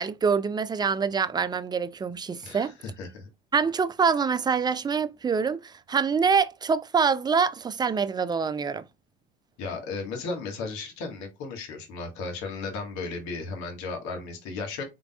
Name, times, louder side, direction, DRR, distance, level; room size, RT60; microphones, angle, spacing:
voice 1, 0.0-2.7 3.5-8.8, right 5 dB, 15° right, 0.3 m, -25 dB
voice 2, 2.4-3.3 9.6-14.8, left 4 dB, 60° left, 1.6 m, -35 dB
3.9 x 3.5 x 2.3 m
hypercardioid pair, 75°, 32 cm